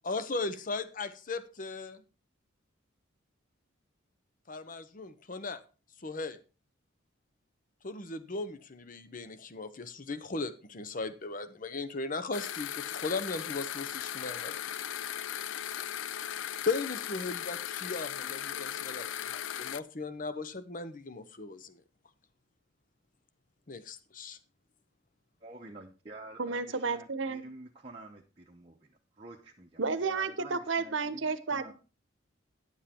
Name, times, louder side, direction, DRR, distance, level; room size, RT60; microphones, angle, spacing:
voice 1, 0.0-2.0 4.5-5.6 6.0-6.4 7.8-14.5 16.7-21.8 23.7-24.4, left 3 dB, 40° left, 12 dB, 0.8 m, -37 dB
sound 1, 12.3-19.8, left 10 dB, 70° left, 0.4 m, -37 dB
voice 2, 25.4-31.2 31.5-31.7, right 2 dB, 30° right, -1 dB, 0.9 m, -49 dB
voice 3, 26.4-27.4 29.8-31.7, right 4 dB, 70° right, 12 dB, 0.9 m, -32 dB
10.0 x 7.4 x 4.3 m, 0.34 s
head